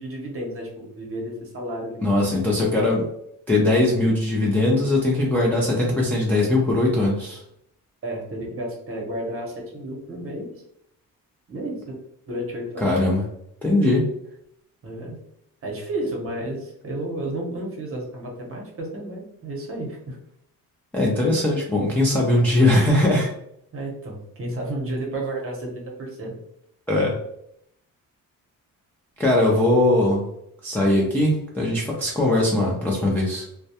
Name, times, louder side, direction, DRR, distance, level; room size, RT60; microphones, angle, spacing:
voice 1, 0.0-2.2 8.0-10.5 11.5-12.0 12.3-12.9 14.8-15.2 15.6-20.2 23.7-26.4, right 1 dB, 40° right, 0 dB, 0.8 m, -32 dB
voice 2, 2.0-3.1 3.5-7.4 12.8-13.2 13.6-14.1 20.9-23.3 26.9-27.2 29.2-30.3 30.6-33.4, left 1 dB, 5° left, -4 dB, 0.3 m, -20 dB
2.2 x 2.0 x 2.7 m, 0.74 s
cardioid pair, 140°, 35 cm